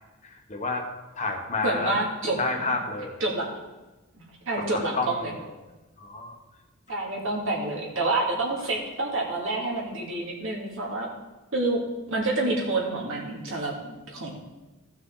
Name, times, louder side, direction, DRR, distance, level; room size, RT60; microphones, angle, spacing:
voice 1, 0.3-0.9 1.2-2.0 2.4-3.1 4.6-5.4 6.0-6.4, left 3 dB, 35° left, 2 dB, 1.2 m, -30 dB
voice 2, 1.6-2.4 2.7-2.8 3.2-3.5 4.5-5.3 6.9-11.1 11.5-11.8 12.1-14.3, right 2 dB, 65° right, -3 dB, 2.6 m, -28 dB
16.0 x 6.2 x 3.9 m, 1.1 s
head